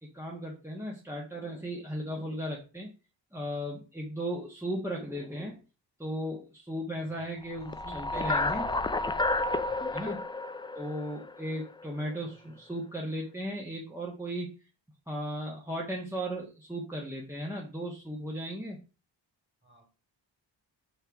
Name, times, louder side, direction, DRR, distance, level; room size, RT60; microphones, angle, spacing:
voice 1, 0.0-2.9 3.3-5.6 6.0-8.7 9.9-10.2 10.7-14.5 15.1-18.8, equal, 5° right, 1.5 m, -36 dB
voice 2, 7.0-8.9 9.6-10.0 19.6-19.8, equal, 25° right, 3.3 m, -54 dB
sound 1, 7.5-11.8, left 2 dB, 10° left, 0.4 m, -31 dB
5.4 x 4.6 x 4.7 m
cardioid pair, 70°, 45 cm